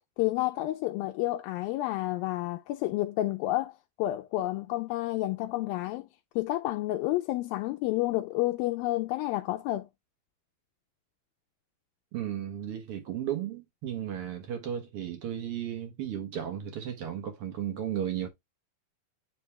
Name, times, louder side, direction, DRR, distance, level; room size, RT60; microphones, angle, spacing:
voice 1, 0.2-6.1 6.4-9.9, left 16 dB, 80° left, 2.3 m, -30 dB
voice 2, 12.1-18.3, right 10 dB, 80° right, 1.3 m, -34 dB
9.4 x 3.3 x 3.4 m
omnidirectional pair, 4.4 m